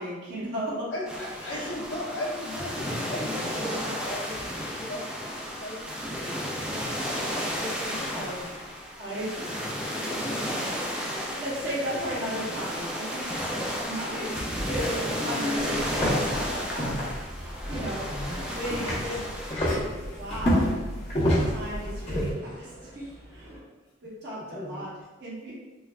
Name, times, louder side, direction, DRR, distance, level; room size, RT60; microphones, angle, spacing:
voice 1, 0.0-0.9 1.5-1.8 8.1-8.4 9.0-9.4 9.9-10.6 10.9-14.3 14.6-16.9 17.4-19.3 20.1-20.7 21.5-23.5 24.0-24.9 25.2-25.5, equal, 60° right, -7 dB, 0.8 m, -35 dB
voice 2, 0.9-5.2 5.6-6.5 7.3-8.3 16.3-16.7 18.1-18.5 24.3-24.9, left 1 dB, 75° left, -4 dB, 0.7 m, -37 dB
sound 1, 1.1-19.5, equal, 5° right, 0.3 m, -33 dB
sound 2, 11.3-23.6, left 1 dB, 75° right, 1.4 m, -42 dB
sound 3, 15.5-22.3, equal, 35° left, 0.8 m, -29 dB
3.3 x 2.3 x 2.3 m, 1.2 s
head